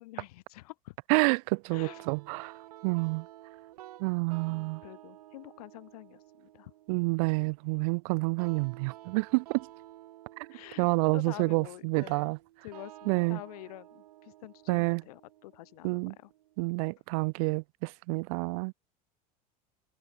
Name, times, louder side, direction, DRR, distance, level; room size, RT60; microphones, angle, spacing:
voice 1, 0.0-1.0 1.7-2.1 4.5-6.7 10.5-10.9 11.1-12.3 12.6-16.3, left 19 dB, 80° left, 3.5 m, -47 dB
voice 2, 1.1-2.5 2.8-3.3 4.0-4.8 6.9-9.7 10.8-12.4 13.1-13.4 14.7-15.0 15.8-16.1 16.6-18.7, right 29 dB, 70° right, 0.5 m, -28 dB
sound 1, 1.9-16.8, right 15 dB, 90° right, 4.4 m, -52 dB
supercardioid pair, 120°, 19 cm